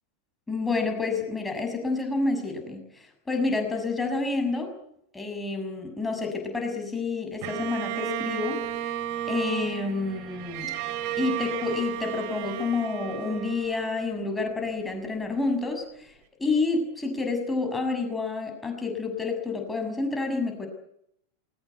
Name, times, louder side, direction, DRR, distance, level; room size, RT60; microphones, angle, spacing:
voice 1, 0.5-4.7 5.1-8.9 9.3-10.7 11.2-16.1 16.4-20.7, left 3 dB, 10° left, 4 dB, 6.6 m, -29 dB
Bowed string instrument, 7.4-14.7, right 11 dB, 45° right, 2.4 m, -33 dB
21.0 x 19.5 x 9.4 m, 0.75 s
figure-of-eight pair, 90°, 0 cm